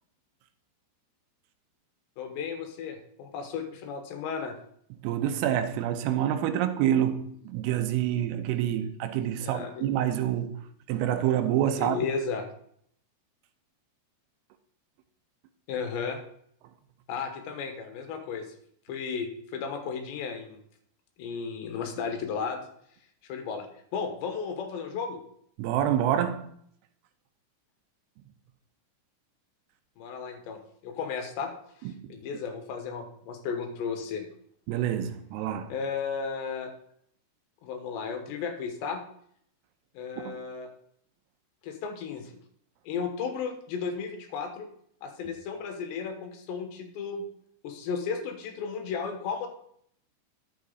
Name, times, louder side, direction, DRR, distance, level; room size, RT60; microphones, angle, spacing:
voice 1, 2.2-4.5 9.4-9.9 11.8-12.5 15.7-16.2 17.1-18.5 18.9-20.6 21.2-22.6 23.3-23.7 23.9-25.2 30.0-31.5 31.8-34.2 35.7-36.7 37.6-39.0 39.9-40.7 41.6-42.4 42.8-44.7 45.0-47.2 47.6-49.5, left 5 dB, 70° left, 3.3 m, -34 dB
voice 2, 5.0-12.0 25.6-26.5 31.8-32.1 34.7-35.7 40.3-40.4, right 10 dB, 90° right, 3.5 m, -27 dB
11.0 x 9.3 x 4.0 m
omnidirectional pair, 5.8 m